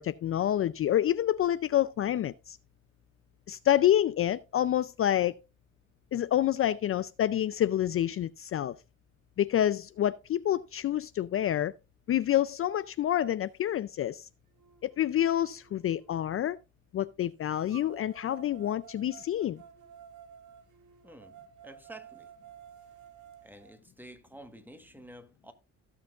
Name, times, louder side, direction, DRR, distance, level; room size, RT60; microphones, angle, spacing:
voice 1, 0.0-2.6 3.5-5.3 6.1-8.7 9.4-11.7 12.1-14.3 14.8-16.6 16.9-19.6, left 11 dB, 45° left, 0.4 m, -28 dB
sound 1, 13.9-14.0 14.6-16.5 17.7-23.7, right 9 dB, 85° right, 1.5 m, -53 dB
voice 2, 21.0-21.4 21.6-22.3 23.4-25.5, right 1 dB, 5° right, 1.3 m, -50 dB
16.5 x 6.0 x 2.4 m
cardioid pair, 90°, 30 cm